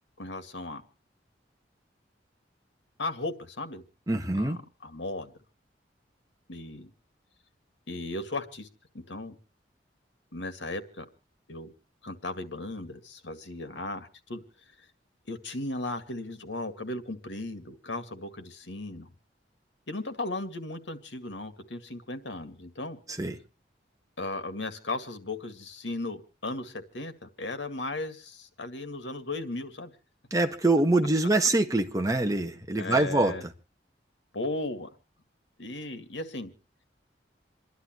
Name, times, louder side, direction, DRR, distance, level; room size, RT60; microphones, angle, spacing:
voice 1, 0.2-0.8 3.0-3.8 4.3-5.3 6.5-6.9 7.9-8.7 8.9-9.4 10.3-11.1 11.5-11.7 12.0-14.4 15.3-19.1 19.9-23.0 24.2-29.9 32.8-33.4 34.3-34.9 35.6-36.5, left 2 dB, 85° left, 2.0 m, -36 dB
voice 2, 4.1-4.6 23.1-23.4 30.3-33.5, right 2 dB, 20° right, 1.6 m, -25 dB
28.0 x 11.5 x 3.1 m
head